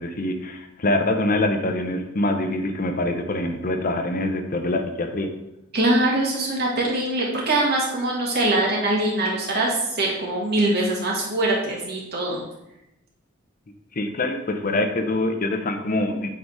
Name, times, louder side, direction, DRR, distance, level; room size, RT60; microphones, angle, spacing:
voice 1, 0.0-5.3 14.0-16.3, left 2 dB, 45° left, 6 dB, 0.8 m, -24 dB
voice 2, 5.7-12.4, right 1 dB, 55° right, -3 dB, 2.1 m, -23 dB
8.3 x 4.1 x 4.8 m, 0.87 s
head